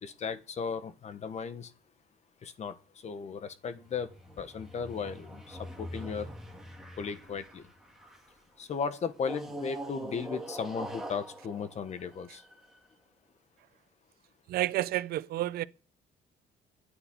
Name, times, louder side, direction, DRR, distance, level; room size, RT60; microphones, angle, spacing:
voice 1, 0.0-1.7 2.4-2.8 3.0-4.1 4.4-6.3 7.0-7.6 8.6-12.4, left 6 dB, 40° left, 1.3 m, -36 dB
sound 1, 3.7-8.4 9.2-12.8, right 1 dB, ahead, 2.3 m, -44 dB
voice 2, 14.5-15.6, right 15 dB, 65° right, 0.6 m, -30 dB
9.2 x 7.9 x 9.3 m
cardioid pair, 110°, 17 cm